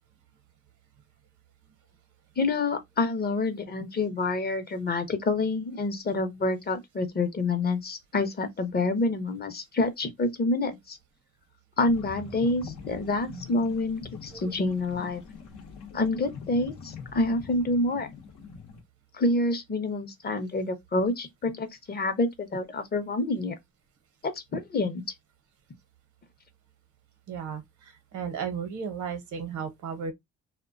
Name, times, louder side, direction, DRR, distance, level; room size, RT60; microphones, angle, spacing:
voice 1, 2.4-11.0 11.8-15.2 15.9-18.1 19.1-23.6 24.2-25.0, left 2 dB, 30° left, 0.6 m, -27 dB
sound 1, 11.8-18.8, left 5 dB, 85° left, 0.7 m, -44 dB
voice 2, 27.3-30.1, right 6 dB, 75° right, 0.7 m, -34 dB
2.3 x 2.1 x 2.4 m
cardioid pair, 90°, 30 cm